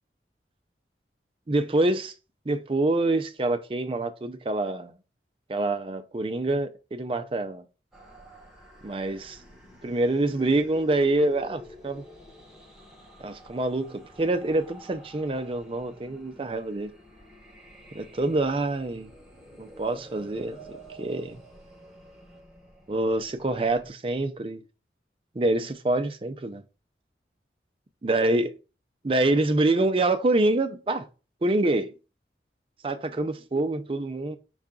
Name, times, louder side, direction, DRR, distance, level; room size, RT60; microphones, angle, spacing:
voice 1, 1.5-2.1 2.5-4.9 5.5-7.6 8.8-9.4 9.8-12.0 13.2-16.9 17.9-19.1 19.6-20.6 21.0-21.4 22.9-24.6 25.4-26.6 28.0-28.5 29.0-31.1 31.4-31.9 32.8-34.4, right 2 dB, 30° right, 0.4 m, -26 dB
sound 1, 7.9-23.9, equal, 5° right, 1.0 m, -49 dB
5.5 x 2.4 x 3.6 m
head